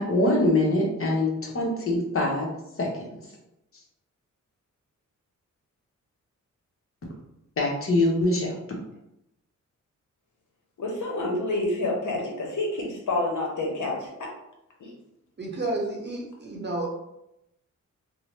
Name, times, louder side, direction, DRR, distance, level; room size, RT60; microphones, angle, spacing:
voice 1, 0.0-2.5 2.8-3.1 7.6-8.6, left 1 dB, 45° left, -1 dB, 0.8 m, -24 dB
voice 2, 10.8-14.3 14.8-14.9, left 2 dB, 70° left, -1 dB, 0.8 m, -28 dB
voice 3, 15.4-16.9, right 2 dB, 35° right, -1 dB, 0.8 m, -31 dB
2.6 x 2.0 x 3.1 m, 0.85 s
cardioid pair, 80°, 32 cm